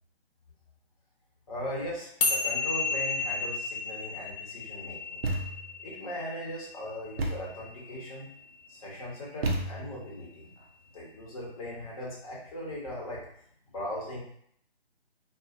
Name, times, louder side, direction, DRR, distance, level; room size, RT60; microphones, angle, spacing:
voice 1, 1.5-5.2 5.8-8.3 8.7-10.5 10.9-13.2 13.7-14.2, equal, 35° left, -4 dB, 0.8 m, -39 dB
sound 1, 2.2-8.8, left 4 dB, 60° left, 0.4 m, -33 dB
Thump thud, 5.2-5.8 7.2-7.6 9.4-10.1, right 2 dB, 70° right, 0.5 m, -32 dB
2.5 x 2.1 x 2.4 m, 0.66 s
figure-of-eight pair, 150°, 32 cm